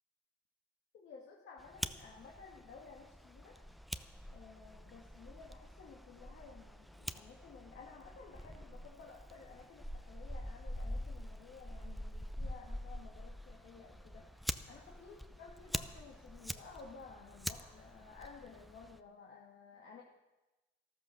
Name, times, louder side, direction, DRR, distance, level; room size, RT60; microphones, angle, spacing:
voice 1, 0.9-3.6 4.3-20.0, left 5 dB, 70° left, -2 dB, 2.1 m, -55 dB
Fire, 1.6-19.0, equal, ahead, 0.7 m, -45 dB
14.0 x 13.5 x 6.4 m, 1.1 s
cardioid pair, 90°, 20 cm